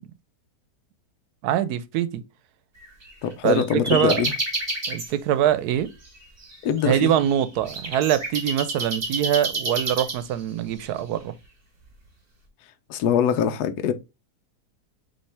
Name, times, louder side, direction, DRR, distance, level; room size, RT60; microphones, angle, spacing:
voice 1, 1.4-2.2 3.4-3.6 3.9-4.2 4.9-5.9 6.8-11.3, right 10 dB, 75° right, 1.1 m, -23 dB
sound 1, 2.8-5.1 5.8-10.6, right 2 dB, 30° right, 1.2 m, -30 dB
voice 2, 3.2-4.3 6.6-7.1 12.9-13.9, left 8 dB, 75° left, 1.1 m, -23 dB
5.5 x 2.9 x 3.3 m
omnidirectional pair, 1.7 m